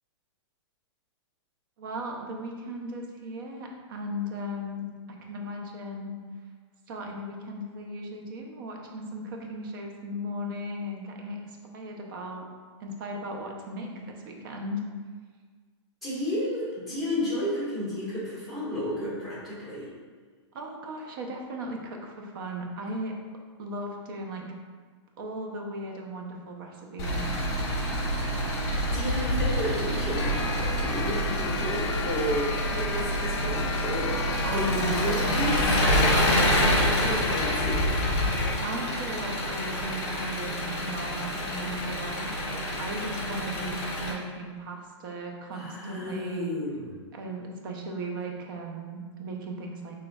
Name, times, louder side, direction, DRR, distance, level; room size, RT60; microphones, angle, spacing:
voice 1, 1.8-4.9 5.2-6.1 6.9-12.5 12.8-14.8 20.5-23.1 23.6-24.5 25.2-27.2 34.4-35.2 37.2-37.5 38.6-46.5 47.1-50.0, right 1 dB, 45° right, 1 dB, 0.6 m, -37 dB
voice 2, 16.0-19.9 28.9-30.4 30.7-37.8 45.5-46.9, left 1 dB, ahead, -8 dB, 1.4 m, -32 dB
Engine, 27.0-44.1, equal, 35° left, 1.0 m, -27 dB
sound 1, 30.1-38.6, left 5 dB, 60° left, 0.4 m, -35 dB
5.0 x 3.2 x 2.3 m, 1.5 s
hypercardioid pair, 155°, 15 cm